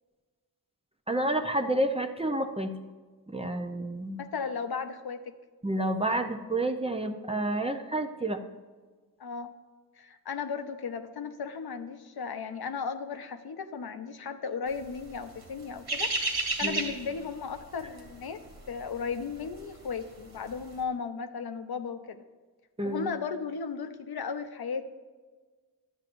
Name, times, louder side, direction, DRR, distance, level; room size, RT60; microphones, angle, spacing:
voice 1, 1.1-2.7 3.3-4.2 5.6-8.4 16.6-16.9 22.8-23.1, right 1 dB, 15° right, 5 dB, 0.5 m, -29 dB
voice 2, 4.2-5.3 9.2-9.5 10.0-16.1 16.6-18.4 18.7-22.2 22.8-24.8, left 5 dB, 70° left, 8 dB, 0.7 m, -35 dB
sound 1, 14.9-20.0 20.3-20.6, right 2 dB, 75° right, 1.7 m, -32 dB
12.0 x 8.8 x 2.5 m, 1.4 s
wide cardioid pair, 105°, 38 cm